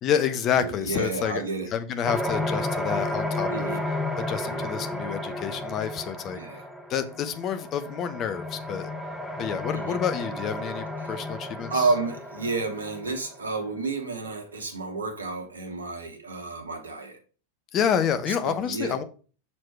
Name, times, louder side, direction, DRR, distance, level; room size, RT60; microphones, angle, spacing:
voice 1, 0.0-1.4 1.7-3.7 4.2-6.4 6.9-8.9 9.4-11.7 17.7-19.0, left 8 dB, 30° left, 0.8 m, -28 dB
voice 2, 0.5-1.7 3.5-3.8 4.5-4.7 6.3-6.6 9.7-10.0 11.0-11.1 11.7-17.2 18.3-19.0, right 3 dB, 75° right, 1.4 m, -31 dB
sound 1, 2.0-13.5, left 1 dB, 5° left, 0.8 m, -33 dB
6.4 x 4.3 x 4.4 m
figure-of-eight pair, 90°, 0 cm